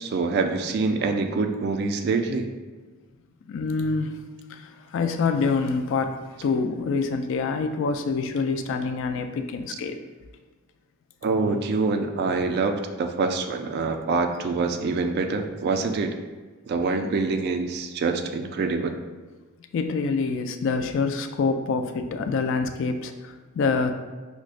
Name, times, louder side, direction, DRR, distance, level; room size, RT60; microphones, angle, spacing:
voice 1, 0.0-2.5 11.2-16.1 16.7-19.0, right 4 dB, 50° right, 6 dB, 0.3 m, -25 dB
voice 2, 3.5-4.2 4.5-10.0 19.7-23.9, left 4 dB, 60° left, 7 dB, 0.3 m, -26 dB
5.8 x 2.0 x 2.4 m, 1.4 s
head